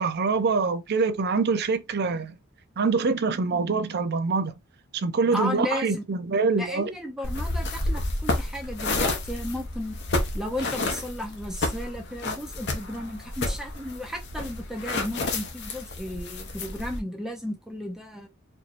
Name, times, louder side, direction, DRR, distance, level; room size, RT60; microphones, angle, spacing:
voice 1, 0.0-2.3 2.8-4.5 4.9-6.9, right 4 dB, 55° right, 0.6 m, -25 dB
voice 2, 5.3-6.0 6.6-10.0 10.3-18.3, left 1 dB, 5° right, 0.6 m, -34 dB
sound 1, 7.2-17.0, left 2 dB, 60° left, 0.9 m, -30 dB
4.5 x 2.8 x 2.5 m
head